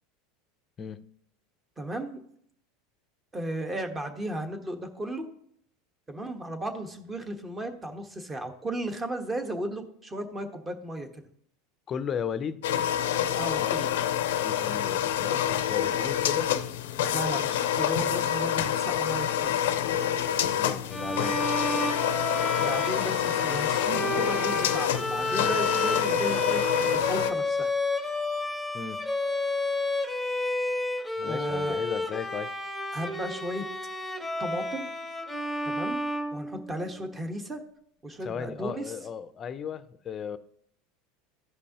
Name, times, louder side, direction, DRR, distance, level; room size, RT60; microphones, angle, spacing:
voice 1, 1.8-2.2 3.3-5.3 6.1-11.2 13.3-13.9 17.1-19.6 22.6-27.7 31.2-31.8 32.9-33.7 34.4-34.9 35.6-36.0 36.3-37.6 38.0-38.9, right 1 dB, 20° right, 1.3 m, -35 dB
voice 2, 11.9-12.6 13.6-13.9 14.3-16.5 20.5-21.4 28.7-29.0 31.2-32.5 38.2-40.4, left 7 dB, 35° left, 0.6 m, -35 dB
sound 1, 12.6-27.3, left 10 dB, 85° left, 0.6 m, -27 dB
Bowed string instrument, 20.9-37.0, left 2 dB, ahead, 1.2 m, -31 dB
14.0 x 5.3 x 2.9 m
supercardioid pair, 115°, 0 cm